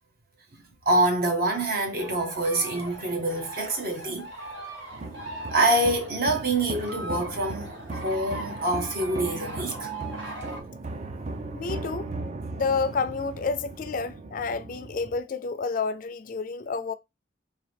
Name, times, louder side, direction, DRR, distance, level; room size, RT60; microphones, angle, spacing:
voice 1, 0.5-4.3 5.5-9.9, right 1 dB, 55° right, 1.0 m, -26 dB
sound 1, 2.0-10.6, right 2 dB, 80° right, 1.6 m, -40 dB
sound 2, 4.9-15.2, right 2 dB, 40° right, 0.4 m, -37 dB
voice 2, 11.5-12.1 12.5-16.9, left 4 dB, 45° left, 0.4 m, -29 dB
3.7 x 2.7 x 3.4 m
head